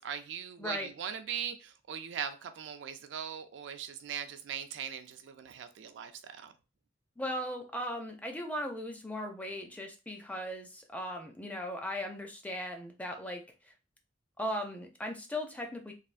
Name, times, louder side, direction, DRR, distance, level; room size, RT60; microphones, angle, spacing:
voice 1, 0.0-6.5, right 8 dB, 70° right, 0.3 m, -40 dB
voice 2, 0.6-0.9 7.2-13.7 14.4-15.9, equal, 10° left, 0.4 m, -38 dB
3.3 x 2.4 x 2.5 m
head